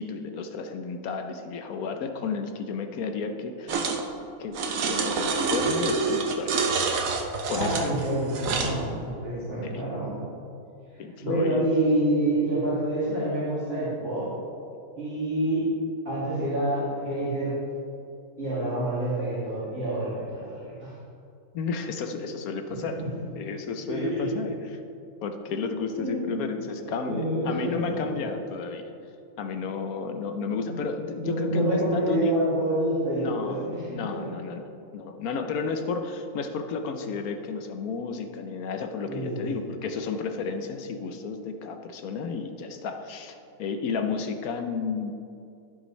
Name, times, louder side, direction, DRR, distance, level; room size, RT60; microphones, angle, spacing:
voice 1, 0.0-3.9 4.4-4.6 4.9-6.5 7.5-7.9 9.6-9.7 11.0-11.7 21.5-23.0 23.4-24.8 25.2-28.9 29.4-32.3 33.1-34.6 34.9-45.1, left 5 dB, 75° left, 6 dB, 1.2 m, -32 dB
sound 1, 3.7-4.0 4.5-8.8, right 4 dB, 70° right, 1.2 m, -27 dB
voice 2, 7.5-10.1 10.9-14.3 15.0-15.7 16.0-17.6 18.4-20.9 23.9-24.2 26.0-26.3 27.1-28.0 30.6-30.8 31.2-34.2 39.1-39.6, right 1 dB, 45° right, -13 dB, 2.9 m, -27 dB
15.5 x 6.1 x 3.2 m, 2.5 s
omnidirectional pair, 1.5 m